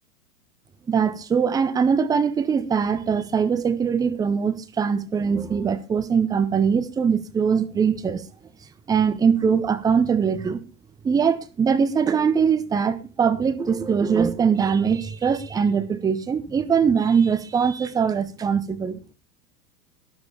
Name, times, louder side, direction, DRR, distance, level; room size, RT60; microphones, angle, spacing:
voice 1, 0.9-8.2 8.9-10.6 11.0-19.0, right 6 dB, 10° right, 0.7 m, -22 dB
12.5 x 12.5 x 3.5 m
figure-of-eight pair, 95°, 46 cm